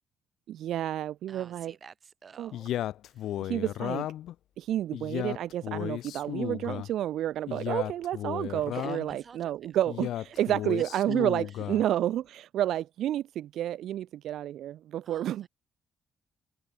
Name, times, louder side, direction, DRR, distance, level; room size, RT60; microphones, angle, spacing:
voice 1, 0.5-1.7 2.4-2.5 3.4-4.1 4.6-15.5, right 12 dB, 75° right, 0.5 m, -30 dB
voice 2, 1.3-2.8 3.1-3.5 8.7-9.8 10.3-10.4 11.5-11.6 15.0-15.5, right 6 dB, 45° right, 4.1 m, -52 dB
Male speech man speaking, 2.5-4.3 4.9-6.9 7.5-9.2 9.9-11.8, left 12 dB, 80° left, 0.3 m, -34 dB
cardioid pair, 90°, 0 cm